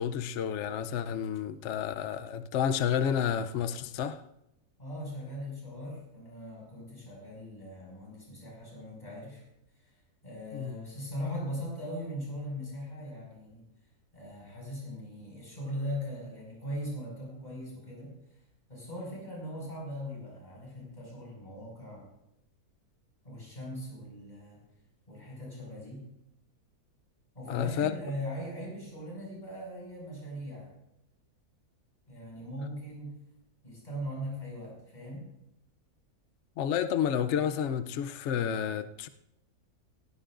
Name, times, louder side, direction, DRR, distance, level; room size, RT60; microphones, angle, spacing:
voice 1, 0.0-4.2 10.5-10.7 27.5-28.0 36.6-39.1, left 8 dB, 60° left, 0.9 m, -30 dB
voice 2, 4.8-9.4 9.8-9.9 10.2-13.6 14.1-18.2 18.7-22.1 23.2-24.6 25.1-26.1 27.3-30.7 32.1-33.2 33.6-35.3, equal, 30° left, 6.1 m, -40 dB
18.0 x 16.0 x 2.5 m
omnidirectional pair, 1.6 m